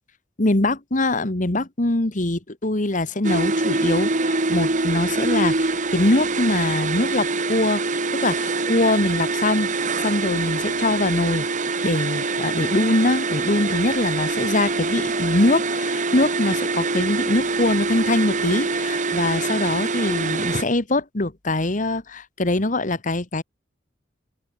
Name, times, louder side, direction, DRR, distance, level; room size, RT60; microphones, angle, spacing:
voice 1, 0.4-11.4 11.8-23.4, left 2 dB, 45° left, 1.7 m, -23 dB
sound 1, 3.2-20.6, right 3 dB, 45° right, 2.0 m, -24 dB
head